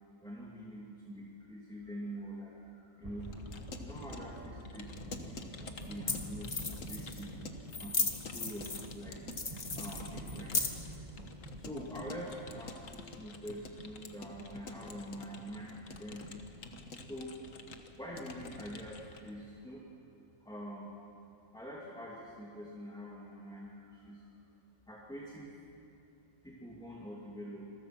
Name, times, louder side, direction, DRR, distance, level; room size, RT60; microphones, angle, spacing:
voice 1, 0.2-3.4 3.8-7.4 7.8-9.3 9.7-10.8 11.3-16.5 17.1-17.4 18.0-19.8 20.4-20.9 21.5-24.3 24.9-25.5 26.4-27.7, equal, 5° left, -5 dB, 2.7 m, -45 dB
sound 1, 3.0-18.8, right 1 dB, 30° right, 1.9 m, -49 dB
Keyboard (musical) / Computer keyboard, 3.2-19.3, left 4 dB, 85° left, 1.8 m, -49 dB
sound 2, 5.0-5.1 5.8-5.9 6.1-6.2 6.4-7.2 7.7-8.9 9.3-10.9, left 4 dB, 50° left, 1.9 m, -35 dB
28.0 x 22.0 x 6.1 m, 2.7 s
omnidirectional pair, 1.3 m